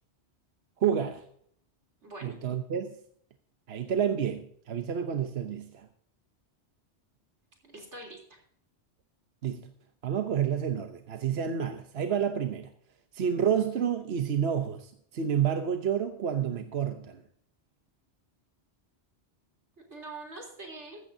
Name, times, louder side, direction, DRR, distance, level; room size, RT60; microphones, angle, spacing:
voice 1, 0.8-1.2 2.2-3.0 3.7-5.9 9.4-9.7 10.0-12.7 13.1-17.2, right 8 dB, 65° right, 7 dB, 1.1 m, -29 dB
voice 2, 2.0-2.4 7.6-8.2 19.8-21.0, right 2 dB, 85° right, 1 dB, 3.8 m, -44 dB
15.0 x 13.5 x 2.7 m, 0.64 s
omnidirectional pair, 1.2 m